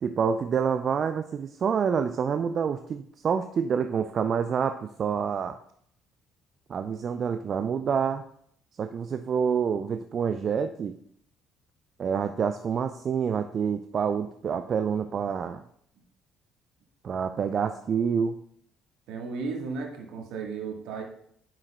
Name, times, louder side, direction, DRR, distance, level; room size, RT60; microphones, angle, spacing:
voice 1, 0.0-5.6 6.7-8.2 8.8-10.9 12.0-15.6 17.0-18.4, right 6 dB, 50° right, 8 dB, 0.4 m, -27 dB
voice 2, 19.1-21.0, right 4 dB, 65° right, 1 dB, 1.4 m, -34 dB
9.6 x 6.3 x 2.3 m, 0.66 s
hypercardioid pair, 50°, 0 cm